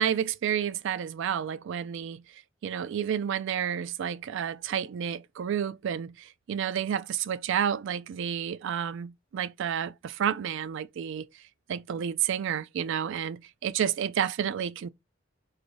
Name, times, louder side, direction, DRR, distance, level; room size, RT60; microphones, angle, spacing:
voice 1, 0.0-2.2 2.6-11.3 11.7-14.9, right 8 dB, 65° right, 0.3 m, -30 dB
4.0 x 2.6 x 3.1 m
head